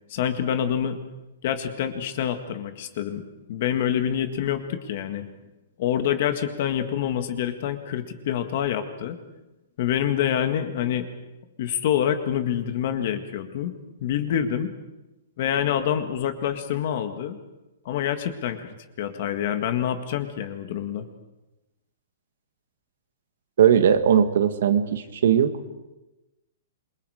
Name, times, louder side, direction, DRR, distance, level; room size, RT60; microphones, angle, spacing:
voice 1, 0.1-1.0 1.4-3.2 3.5-5.2 5.8-9.2 9.8-11.1 11.6-13.7 14.0-14.7 15.4-17.4 17.9-21.1, left 9 dB, 40° left, 8 dB, 1.8 m, -26 dB
voice 2, 23.6-25.5, right 8 dB, 60° right, 9 dB, 1.8 m, -19 dB
27.5 x 23.0 x 5.0 m, 1.0 s
hypercardioid pair, 175°, 0 cm